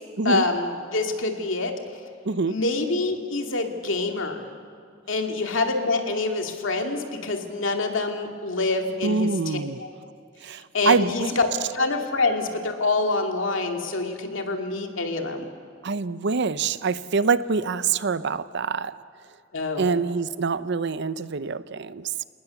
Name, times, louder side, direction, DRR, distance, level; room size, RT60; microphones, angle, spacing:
voice 1, 0.2-1.7 2.4-4.4 5.1-9.6 10.7-11.5 11.7-15.5 19.5-19.9, left 3 dB, 70° left, 4 dB, 2.4 m, -26 dB
voice 2, 2.2-2.6 9.0-9.8 10.4-11.3 15.8-19.0 19.8-22.2, right 4 dB, 60° right, 15 dB, 0.7 m, -25 dB
28.0 x 19.0 x 7.0 m, 2.2 s
head